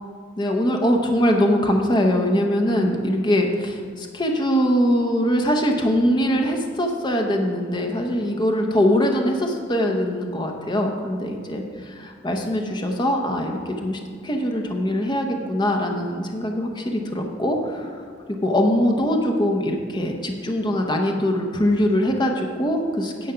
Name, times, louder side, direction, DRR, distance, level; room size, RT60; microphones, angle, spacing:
voice 1, 0.4-17.9 18.3-23.3, equal, 25° left, 2 dB, 0.8 m, -22 dB
10.5 x 7.3 x 5.6 m, 2.1 s
head